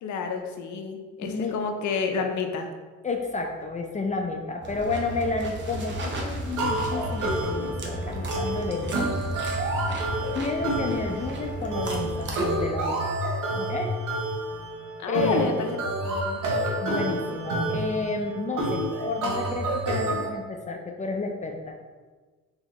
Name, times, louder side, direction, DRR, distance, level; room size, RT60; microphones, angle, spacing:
voice 1, 0.0-2.7 15.0-16.4, left 5 dB, 70° left, 5 dB, 0.6 m, -29 dB
voice 2, 1.2-1.5 3.0-9.1 10.3-13.2 13.5-13.9 15.1-15.6 16.8-21.8, left 3 dB, 25° left, 2 dB, 0.4 m, -31 dB
sound 1, 4.6-12.6, right 1 dB, 40° right, 0.7 m, -34 dB
sound 2, 6.6-20.3, right 1 dB, 90° right, 0.8 m, -29 dB
4.0 x 2.8 x 3.0 m, 1.4 s
cardioid pair, 90°, 30 cm